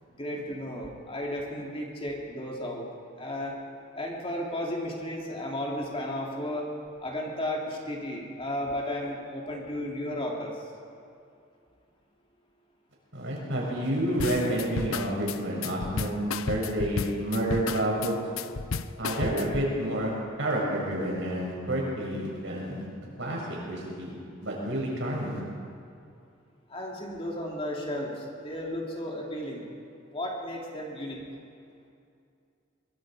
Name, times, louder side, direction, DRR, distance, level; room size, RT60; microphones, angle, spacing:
voice 1, 0.1-2.8 3.2-3.6 3.9-6.7 7.0-10.6 26.7-29.7 30.1-31.2, left 1 dB, 30° left, -2 dB, 3.2 m, -34 dB
voice 2, 13.1-18.3 19.0-22.9 23.2-24.1 24.4-25.4, right 1 dB, 65° right, -3 dB, 7.1 m, -29 dB
sound 1, 14.2-19.7, left 4 dB, 90° left, 0.7 m, -33 dB
24.0 x 23.5 x 5.2 m, 2.4 s
head